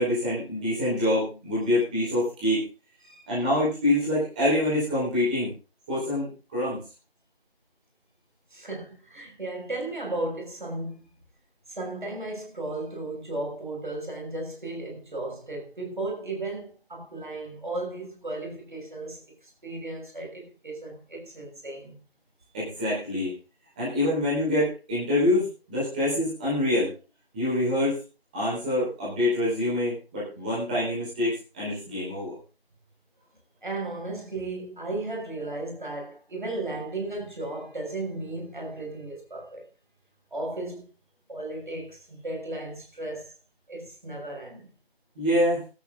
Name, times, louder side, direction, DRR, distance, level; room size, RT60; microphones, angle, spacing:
voice 1, 0.0-2.6 3.3-5.5 5.9-6.8 22.5-23.3 23.8-26.9 27.3-28.0 28.3-32.3 45.1-45.6, left 1 dB, 10° right, 4.4 m, -25 dB
voice 2, 8.5-11.0 11.7-22.0 33.6-39.7 40.3-40.9 41.3-43.4 43.7-44.7, right 2 dB, 50° right, 6.3 m, -35 dB
15.5 x 13.0 x 3.8 m
figure-of-eight pair, 170°, 31 cm